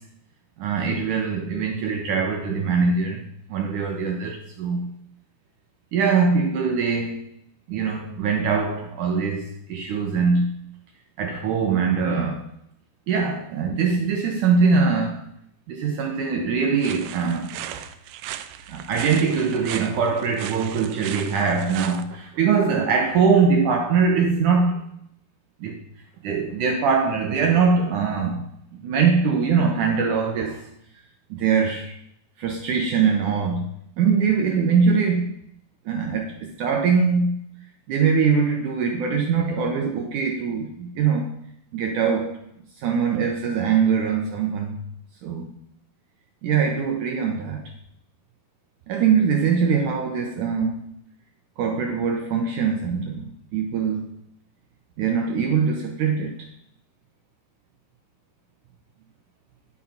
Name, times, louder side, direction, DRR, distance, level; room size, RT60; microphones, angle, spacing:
voice 1, 0.6-3.2 3.5-4.9 5.9-7.3 7.7-10.5 11.2-12.4 13.1-15.2 15.7-17.9 18.7-24.8 25.6-25.8 26.2-28.4 28.8-30.7 31.3-31.9 32.4-33.7 34.0-35.4 35.9-37.4 37.9-41.3 41.7-42.4 42.8-44.8 45.2-45.5 46.4-47.6 48.9-50.9 51.6-54.1 55.0-56.3, right 5 dB, 70° right, 3 dB, 2.0 m, -22 dB
sound 1, 16.8-22.0, right 12 dB, 90° right, 1.9 m, -37 dB
11.0 x 6.4 x 5.8 m, 0.72 s
omnidirectional pair, 4.6 m